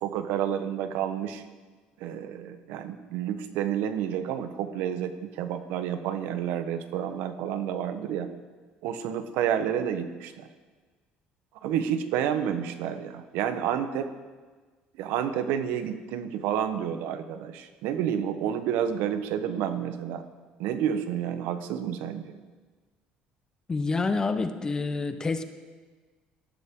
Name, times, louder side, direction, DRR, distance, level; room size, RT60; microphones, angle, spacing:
voice 1, 0.0-1.4 2.0-8.3 8.8-10.5 11.6-14.1 15.0-20.2 20.6-22.3, right 9 dB, 85° right, 9 dB, 1.1 m, -30 dB
voice 2, 23.7-25.4, left 3 dB, 20° left, 10 dB, 0.9 m, -27 dB
18.5 x 13.0 x 3.8 m, 1.4 s
cardioid pair, 125°, 3 cm